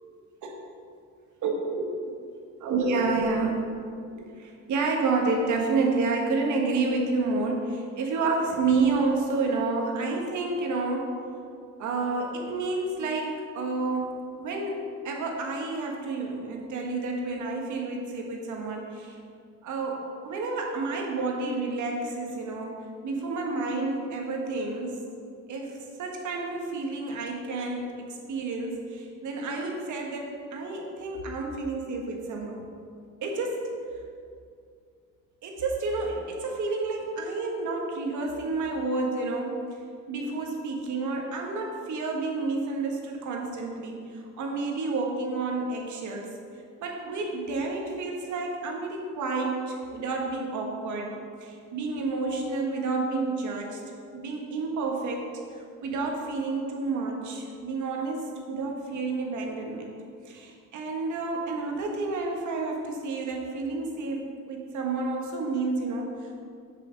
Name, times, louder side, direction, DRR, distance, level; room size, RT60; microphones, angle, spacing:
voice 1, 2.6-3.6 4.1-11.1 11.8-19.2 19.6-22.7 23.0-25.0 25.5-32.6 33.2-33.7 35.4-39.7 40.1-46.3 46.8-53.8 54.1-55.3 55.8-59.9 60.2-66.4, right 3 dB, 65° right, 0 dB, 1.4 m, -30 dB
7.1 x 5.8 x 5.1 m, 2.3 s
cardioid pair, 135°, 32 cm